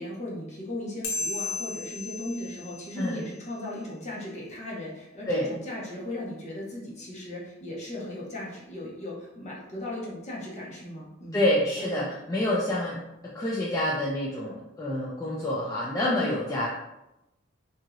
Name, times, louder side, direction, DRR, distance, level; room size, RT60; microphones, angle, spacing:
voice 1, 0.0-11.4, left 1 dB, 35° left, -5 dB, 0.8 m, -37 dB
sound 1, 1.0-3.9, left 3 dB, 80° left, 0.7 m, -36 dB
voice 2, 11.3-13.0 13.3-16.7, left 1 dB, 15° left, -6 dB, 0.4 m, -27 dB
2.9 x 2.7 x 2.4 m, 0.93 s
head